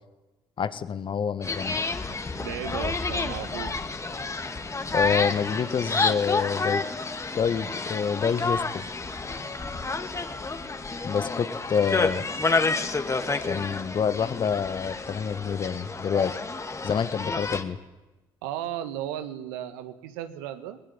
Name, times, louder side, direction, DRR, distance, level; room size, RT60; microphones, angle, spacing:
voice 1, 0.6-1.8 4.9-6.8 7.3-8.8 11.0-12.2 13.4-16.4 16.8-17.8, left 7 dB, 45° left, 13 dB, 1.8 m, -27 dB
sound 1, 1.4-17.6, left 3 dB, 25° left, 2.4 m, -29 dB
voice 2, 2.4-3.9 18.4-20.8, right 11 dB, 85° right, 10 dB, 1.8 m, -35 dB
20.5 x 19.0 x 10.0 m, 1.1 s
hypercardioid pair, 55°, 11 cm